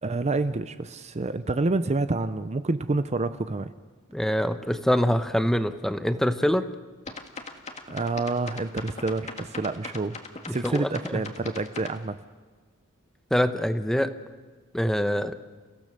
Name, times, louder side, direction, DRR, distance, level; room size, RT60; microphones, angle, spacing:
voice 1, 0.0-3.7 7.9-10.2 10.5-12.2, right 3 dB, 30° right, 12 dB, 0.6 m, -28 dB
voice 2, 4.1-6.7 10.5-11.2 13.3-14.1 14.7-15.3, equal, ahead, 10 dB, 0.9 m, -25 dB
sound 1, 7.1-12.0, left 3 dB, 30° left, 1.8 m, -39 dB
29.5 x 16.0 x 6.7 m, 1.4 s
head